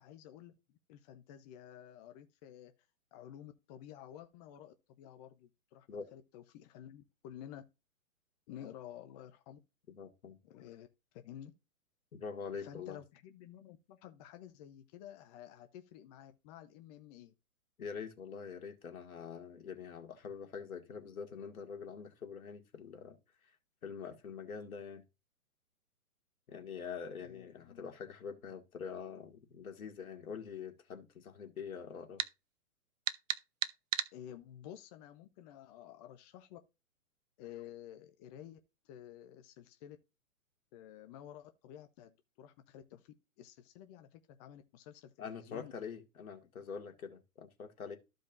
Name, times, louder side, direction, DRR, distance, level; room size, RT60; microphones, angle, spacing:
voice 1, 0.0-2.7 3.1-7.6 8.5-9.6 10.4-10.9 11.1-11.5 12.6-17.3 27.2-27.9 34.1-36.6 37.4-38.6 38.8-40.0 40.7-45.7 46.4-46.5, left 11 dB, 30° left, 0.8 m, -52 dB
voice 2, 9.9-10.4 12.1-13.0 17.8-23.2 23.4-23.5 23.8-25.0 26.5-32.2 45.2-48.0, left 6 dB, 75° left, 2.2 m, -45 dB
sound 1, 32.2-32.3 33.1-34.1, right 10 dB, 60° right, 0.8 m, -34 dB
14.0 x 5.1 x 2.6 m
hypercardioid pair, 130°, 43 cm